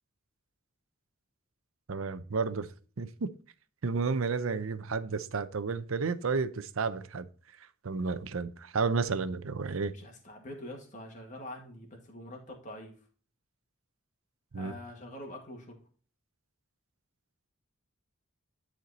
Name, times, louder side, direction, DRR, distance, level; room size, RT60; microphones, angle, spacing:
voice 1, 1.9-2.7 3.0-3.4 3.8-7.3 7.6-10.0 14.5-14.7, right 4 dB, 75° right, 0.6 m, -32 dB
voice 2, 9.9-12.9 14.5-15.8, left 1 dB, 35° left, 2.0 m, -45 dB
11.0 x 4.4 x 4.1 m
head